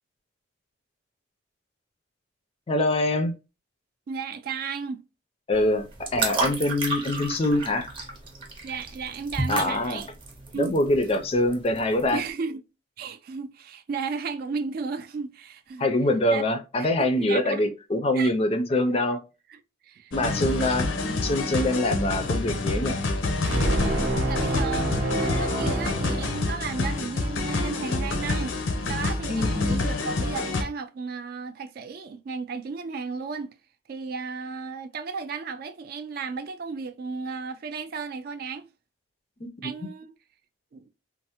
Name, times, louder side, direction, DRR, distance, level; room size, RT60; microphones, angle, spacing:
voice 1, 2.7-3.3 5.5-5.8 6.1-7.9 9.5-10.0 10.5-12.2 15.8-19.2 20.1-20.9 21.2-23.0 29.3-29.9 39.4-39.7, left 1 dB, 30° left, 0.4 m, -24 dB
voice 2, 4.1-5.1 6.5-6.6 8.6-10.1 10.5-10.8 12.1-12.6 13.0-15.9 16.3-16.4 16.8-16.9 17.2-17.6 18.1-18.3 19.5-19.6 19.8-20.4 24.2-24.9 25.2-28.6 28.9-33.5 33.9-38.7 39.6-40.1 40.7-40.9, right 5 dB, 50° right, 0.3 m, -34 dB
sound 1, 5.5-12.3, right 3 dB, 25° right, 0.7 m, -32 dB
sound 2, 20.1-30.6, left 2 dB, 85° left, 0.6 m, -28 dB
sound 3, 23.5-26.9, right 1 dB, 70° right, 0.7 m, -27 dB
3.2 x 2.0 x 2.8 m
head